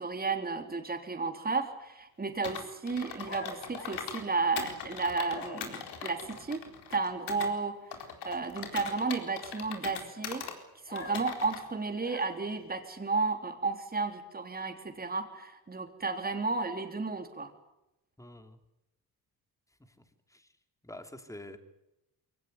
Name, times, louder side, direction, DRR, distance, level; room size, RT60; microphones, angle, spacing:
voice 1, 0.0-6.6 6.9-7.8 8.2-10.4 10.9-17.5, right 4 dB, 25° right, 5 dB, 3.6 m, -33 dB
Computer keyboard, 2.4-4.2 4.6-7.5 7.9-10.6 11.0-11.6, left 7 dB, 80° left, 4.2 m, -41 dB
sound 1, 3.2-4.8 5.3-5.9 10.9-12.7, left 2 dB, 35° left, 6.8 m, -47 dB
voice 2, 18.2-18.6 20.3-20.5 20.8-21.6, left 1 dB, 10° left, 7 dB, 3.1 m, -46 dB
23.0 x 18.0 x 9.8 m, 0.90 s
cardioid pair, 95°, 39 cm